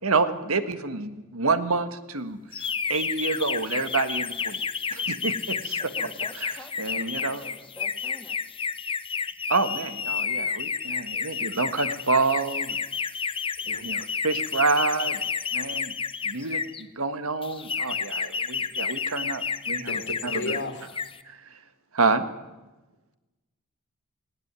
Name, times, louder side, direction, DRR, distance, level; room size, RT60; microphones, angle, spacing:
voice 1, 0.0-4.6 4.9-5.8 6.4-6.5 6.8-7.4 9.5-12.8 13.7-15.2 15.5-15.9 16.2-20.6 21.3-21.6 21.9-22.2, right 3 dB, 75° right, 10 dB, 1.6 m, -28 dB
sound 1, 2.5-16.8 17.4-20.6 20.9-21.2, left 6 dB, 25° left, 0.8 m, -30 dB
voice 2, 5.8-8.5, left 1 dB, 10° left, 6 dB, 2.2 m, -47 dB
voice 3, 19.9-20.9, left 2 dB, 55° left, 4 dB, 2.5 m, -34 dB
19.0 x 18.5 x 9.8 m, 1.1 s
head